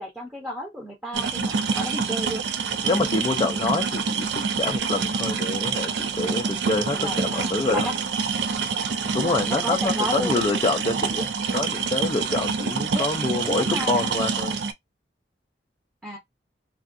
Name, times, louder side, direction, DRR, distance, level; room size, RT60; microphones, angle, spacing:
voice 1, 0.0-2.4 6.9-7.9 9.3-10.4 12.9-13.1 13.5-14.1 16.0-16.2, equal, 10° right, 0.7 m, -32 dB
sound 1, 1.1-14.7, right 5 dB, 75° right, 0.4 m, -26 dB
voice 2, 2.8-7.0 7.2-7.9 9.1-14.5, left 3 dB, 25° left, 0.4 m, -26 dB
3.3 x 2.3 x 2.5 m
head